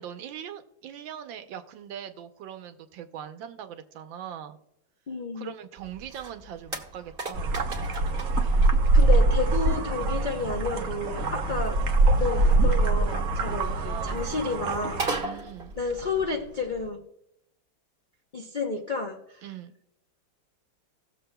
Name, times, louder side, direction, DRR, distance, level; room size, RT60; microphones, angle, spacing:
voice 1, 0.0-4.6 5.3-7.6 13.6-14.3 15.2-15.8 19.4-19.7, right 9 dB, 80° right, 8 dB, 1.5 m, -41 dB
voice 2, 5.1-5.5 8.5-8.6 8.9-11.8 12.2-15.3 15.8-17.0 18.3-19.4, left 4 dB, 55° left, 1 dB, 0.5 m, -31 dB
sound 1, 5.8-16.9, right 3 dB, 35° right, 1.4 m, -40 dB
sound 2, 7.3-15.2, right 2 dB, 55° right, 1.1 m, -23 dB
18.0 x 7.2 x 2.2 m, 0.79 s
omnidirectional pair, 2.1 m